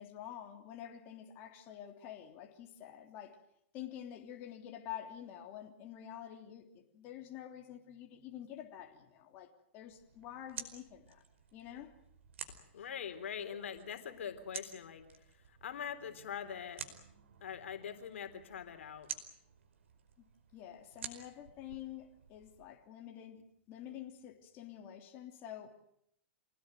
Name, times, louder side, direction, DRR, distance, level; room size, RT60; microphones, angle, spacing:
voice 1, 0.0-3.4 3.7-11.2 11.5-11.9 13.5-13.6 20.5-25.8, left 11 dB, 35° left, 3.3 m, -48 dB
sound 1, 9.9-22.7, right 7 dB, 75° right, 4.9 m, -51 dB
voice 2, 12.7-15.1 15.5-16.8 17.4-19.1, left 8 dB, 80° left, 3.8 m, -43 dB
28.0 x 19.0 x 9.2 m
hypercardioid pair, 145°, 7 cm